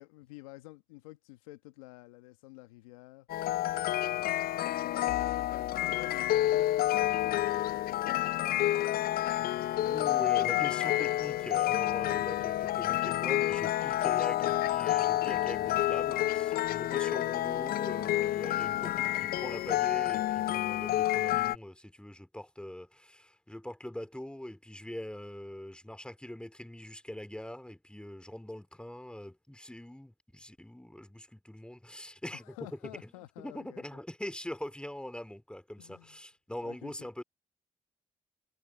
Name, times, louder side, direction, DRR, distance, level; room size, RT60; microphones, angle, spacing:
voice 1, 0.0-3.3 4.1-10.6 12.0-12.5 32.3-34.0 35.8-36.2 36.6-37.1, left 20 dB, 90° left, 1.6 m, -51 dB
sound 1, 3.3-21.6, left 14 dB, 60° left, 0.4 m, -29 dB
voice 2, 9.8-32.6 33.0-33.1 33.4-37.2, left 1 dB, 5° left, 2.5 m, -43 dB
hypercardioid pair, 45°, 17 cm